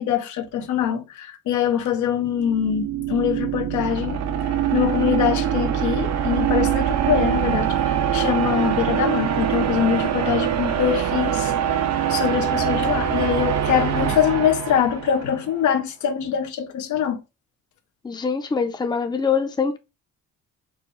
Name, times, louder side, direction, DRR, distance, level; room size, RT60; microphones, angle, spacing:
voice 1, 0.0-11.5 12.1-17.2, left 9 dB, 75° left, 0.8 m, -23 dB
sound 1, 2.3-15.4, right 9 dB, 60° right, 0.8 m, -23 dB
voice 2, 18.0-19.8, left 5 dB, 15° left, 0.6 m, -23 dB
4.6 x 2.2 x 3.1 m
cardioid pair, 90°, 30 cm